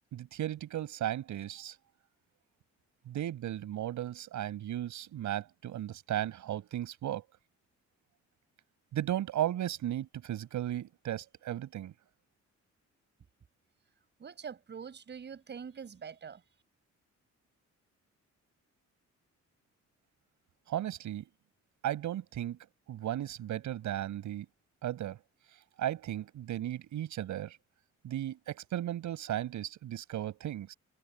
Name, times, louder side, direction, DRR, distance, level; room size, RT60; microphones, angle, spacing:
voice 1, 0.1-1.8 3.1-7.2 8.9-11.9 20.7-21.3 21.8-22.6 22.9-24.5 24.8-25.2 25.8-27.6 28.0-30.7, right 12 dB, 85° right, 5.9 m, -35 dB
voice 2, 14.2-16.4, right 7 dB, 35° right, 6.9 m, -44 dB
cardioid pair, 170°, 29 cm